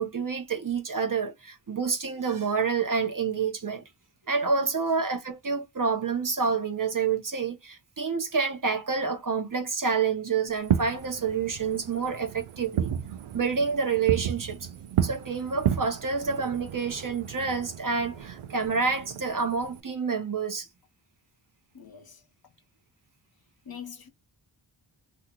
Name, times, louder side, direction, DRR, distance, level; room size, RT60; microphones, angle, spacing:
voice 1, 0.0-3.8 4.3-12.9 13.3-14.7 15.0-20.7, right 5 dB, 40° right, 0.8 m, -28 dB
Fireworks, 10.5-19.8, right 9 dB, 80° right, 0.6 m, -33 dB
voice 2, 21.7-22.2 23.6-24.1, left 8 dB, 50° left, 0.9 m, -43 dB
2.9 x 2.4 x 3.7 m
wide cardioid pair, 70°, 48 cm